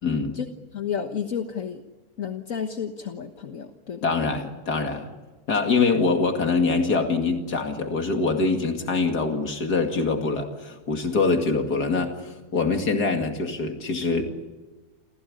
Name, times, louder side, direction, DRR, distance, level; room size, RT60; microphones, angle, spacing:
voice 1, 0.0-0.4 4.0-5.1 5.5-14.4, left 4 dB, 85° left, 4 dB, 2.8 m, -24 dB
voice 2, 0.7-1.8 2.2-4.1, left 7 dB, 60° left, 6 dB, 1.6 m, -31 dB
28.5 x 16.5 x 9.8 m, 1.2 s
omnidirectional pair, 1.7 m